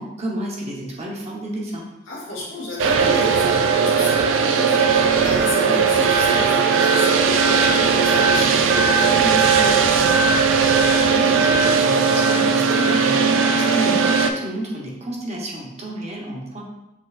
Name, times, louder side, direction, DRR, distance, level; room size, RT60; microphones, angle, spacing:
voice 1, 0.0-1.9 11.0-16.6, right 1 dB, 35° right, -2 dB, 0.9 m, -30 dB
voice 2, 2.1-10.1 12.6-12.9, left 2 dB, 80° left, -5 dB, 1.5 m, -32 dB
sound 1, 2.8-14.3, right 5 dB, 75° right, 0.4 m, -18 dB
6.2 x 3.1 x 2.4 m, 0.94 s
head